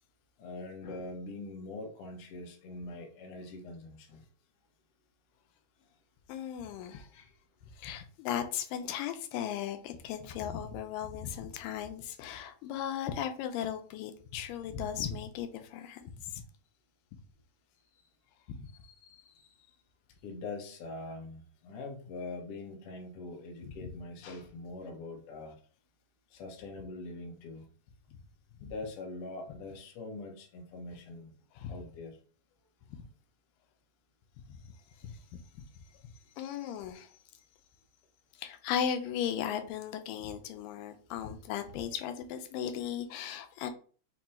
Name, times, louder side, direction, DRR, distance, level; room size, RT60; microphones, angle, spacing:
voice 1, 0.4-4.2 6.8-7.3 17.9-18.1 19.0-19.8 20.2-25.6 26.3-27.6 28.6-31.3 31.7-32.2 34.6-35.5 35.8-36.3 41.1-41.3, left 2 dB, 60° left, 1 dB, 1.6 m, -44 dB
voice 2, 6.3-7.1 7.8-16.4 18.5-18.7 23.8-23.9 28.6-28.7 31.6-31.7 32.9-33.0 34.5-34.6 35.0-35.2 36.4-37.1 38.4-43.7, left 9 dB, 90° left, 8 dB, 2.3 m, -36 dB
5.4 x 2.2 x 4.2 m, 0.42 s
omnidirectional pair, 3.8 m